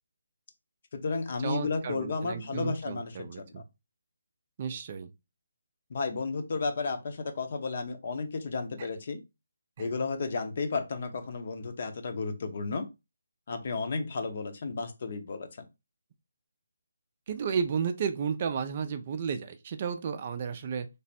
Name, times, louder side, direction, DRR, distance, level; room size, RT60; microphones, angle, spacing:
voice 1, 0.9-3.6 5.9-9.2 9.8-12.9 13.5-15.7, left 4 dB, 50° left, 0.7 m, -33 dB
voice 2, 1.4-3.6 4.6-5.1 9.8-9.9 17.3-20.9, right 6 dB, 40° right, 0.4 m, -33 dB
3.3 x 2.1 x 4.1 m
figure-of-eight pair, 155°, 0 cm